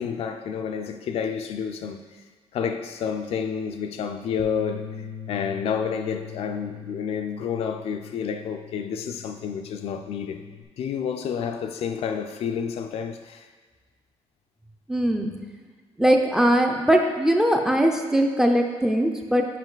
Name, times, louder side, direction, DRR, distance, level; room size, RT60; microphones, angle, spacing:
voice 1, 0.0-2.0 2.5-10.4 10.8-13.5, left 7 dB, 60° left, 0.4 m, -30 dB
Bass guitar, 4.4-10.6, left 9 dB, 75° left, 0.8 m, -41 dB
voice 2, 14.9-15.3 16.0-19.4, right 1 dB, 5° right, 0.4 m, -20 dB
7.4 x 5.1 x 3.9 m
cardioid pair, 160°, 12 cm